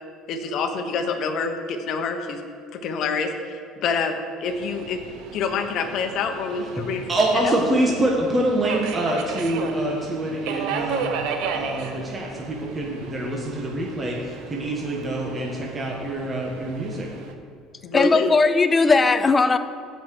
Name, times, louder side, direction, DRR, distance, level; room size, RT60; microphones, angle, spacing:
voice 1, 0.3-2.4 2.7-5.0 5.3-7.0 17.9-18.3, left 5 dB, 50° left, 1.1 m, -26 dB
Subway metro underground, 4.5-17.3, right 5 dB, 75° right, 1.0 m, -34 dB
voice 2, 7.1-11.1 11.5-17.1, right 1 dB, 20° right, 1.3 m, -25 dB
voice 3, 17.9-19.6, left 3 dB, 20° left, 0.5 m, -18 dB
15.5 x 5.6 x 4.8 m
cardioid pair, 140°, 0 cm